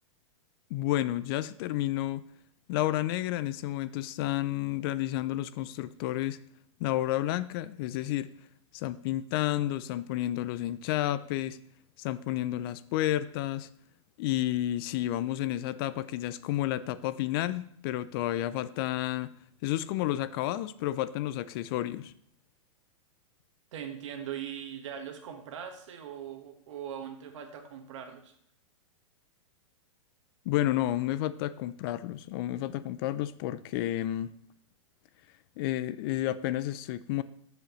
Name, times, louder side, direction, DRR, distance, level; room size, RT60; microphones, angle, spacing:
voice 1, 0.7-2.2 2.7-6.4 6.8-8.3 8.7-11.6 12.0-13.7 14.2-19.3 19.6-22.1 30.5-34.3 35.6-37.2, left 14 dB, 45° left, 16 dB, 0.4 m, -31 dB
voice 2, 23.7-28.3, right 9 dB, 65° right, 5 dB, 1.5 m, -40 dB
13.5 x 4.9 x 3.1 m, 0.66 s
hypercardioid pair, 125°, 17 cm